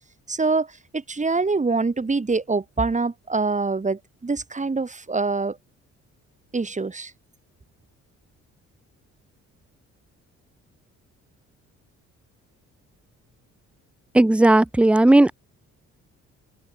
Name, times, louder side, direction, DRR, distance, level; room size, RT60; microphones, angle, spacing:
voice 1, 0.3-5.6 6.5-7.1, right 3 dB, 25° right, 4.7 m, -25 dB
voice 2, 14.1-15.3, right 1 dB, 5° right, 0.5 m, -15 dB
cardioid pair, 90°, 30 cm